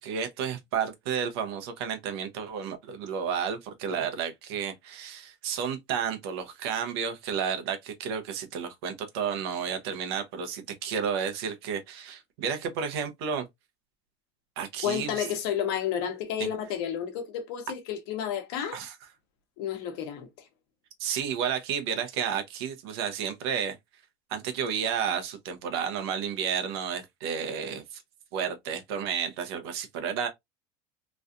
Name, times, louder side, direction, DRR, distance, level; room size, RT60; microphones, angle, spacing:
voice 1, 0.0-13.5 14.6-15.3 16.4-16.5 18.7-19.0 21.0-23.8 24.3-28.0 28.3-30.3, right 7 dB, 80° right, 0.9 m, -31 dB
voice 2, 14.8-18.8 19.6-20.3, left 9 dB, 70° left, 1.0 m, -31 dB
3.1 x 2.4 x 2.6 m
cardioid pair, 155°, 13 cm